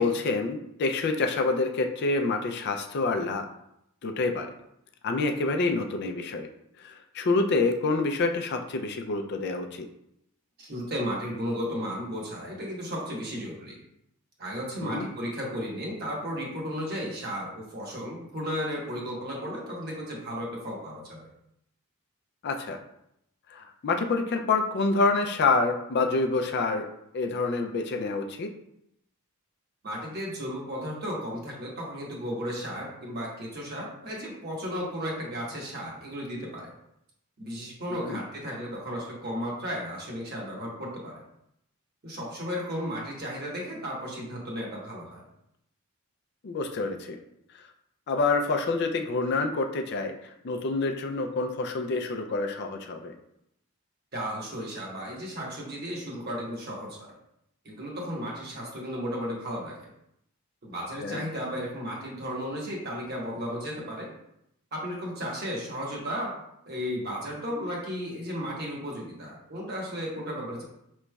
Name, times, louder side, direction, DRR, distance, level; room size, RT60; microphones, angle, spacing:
voice 1, 0.0-3.5 4.0-4.5 5.0-6.5 6.8-9.9 14.8-15.1 22.4-22.8 23.5-26.9 27.1-28.5 38.0-38.2 46.4-47.2 48.1-50.2 50.4-53.1 61.0-61.2, left 3 dB, 50° left, 5 dB, 0.4 m, -27 dB
voice 2, 10.6-13.8 14.4-21.2 29.8-36.7 37.4-41.2 42.0-45.2 54.1-57.0 57.6-59.8 60.6-64.1 64.7-66.3 66.6-70.6, equal, 45° right, -2 dB, 1.1 m, -34 dB
5.1 x 3.0 x 2.2 m, 0.78 s
head